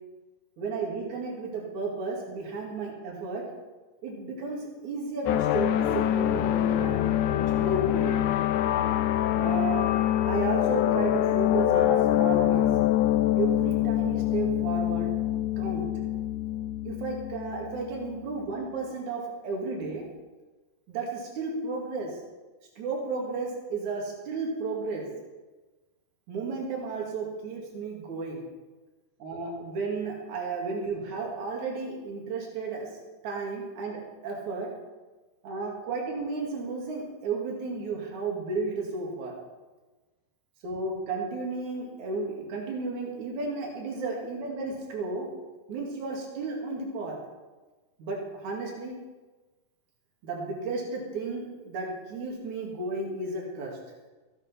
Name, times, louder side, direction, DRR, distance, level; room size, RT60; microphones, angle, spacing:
voice 1, 0.6-3.4 4.0-7.0 7.6-8.3 9.3-9.8 10.3-12.7 13.4-15.1 15.6-15.9 16.8-20.0 20.9-22.2 22.8-25.1 26.3-28.4 29.2-32.9 33.2-34.7 35.4-39.4 40.6-45.3 45.7-47.2 48.0-48.9 50.2-53.8, right 3 dB, 65° right, -1 dB, 3.6 m, -33 dB
sound 1, 5.3-18.3, left 12 dB, 80° left, 2.0 m, -25 dB
15.0 x 9.0 x 5.7 m, 1.2 s
omnidirectional pair, 3.8 m